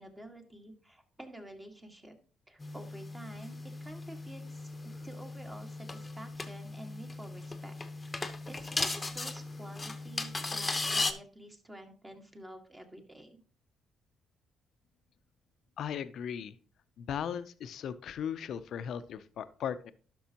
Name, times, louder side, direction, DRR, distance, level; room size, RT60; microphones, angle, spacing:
voice 1, 0.0-2.2 2.5-7.7 8.5-13.4, right 1 dB, 20° right, 4 dB, 1.7 m, -49 dB
sound 1, 2.6-11.1, left 3 dB, 20° left, 0.9 m, -37 dB
voice 2, 15.8-16.5 17.0-19.9, left 8 dB, 70° left, 13 dB, 0.5 m, -37 dB
11.5 x 6.0 x 2.9 m, 0.40 s
cardioid pair, 90°, 0 cm